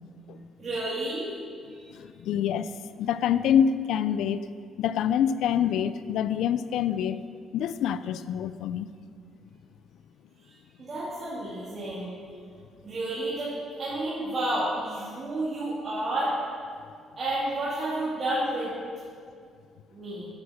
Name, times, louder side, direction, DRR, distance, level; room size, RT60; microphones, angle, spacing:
voice 1, 0.6-1.3 1.7-1.9 10.4-10.5 10.8-12.2 12.8-16.4 17.2-18.7 19.9-20.3, right 1 dB, 40° right, -10 dB, 2.5 m, -31 dB
voice 2, 1.9-2.7 3.0-4.4 4.8-7.2 7.5-8.9, left 9 dB, 85° left, 14 dB, 0.3 m, -26 dB
9.6 x 6.2 x 5.7 m, 2.2 s
cardioid pair, 90°, 0 cm